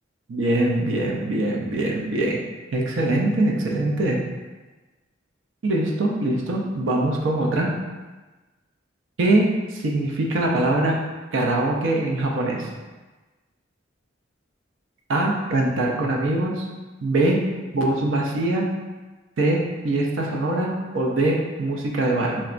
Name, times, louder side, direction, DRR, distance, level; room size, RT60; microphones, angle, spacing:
voice 1, 0.3-2.4 2.7-4.2 5.6-7.7 9.2-9.5 9.7-11.0 11.3-12.7 15.1-16.7 17.0-17.4 17.7-18.7 19.4-22.4, right 2 dB, 80° right, -1 dB, 0.5 m, -22 dB
3.9 x 2.2 x 2.5 m, 1.2 s
head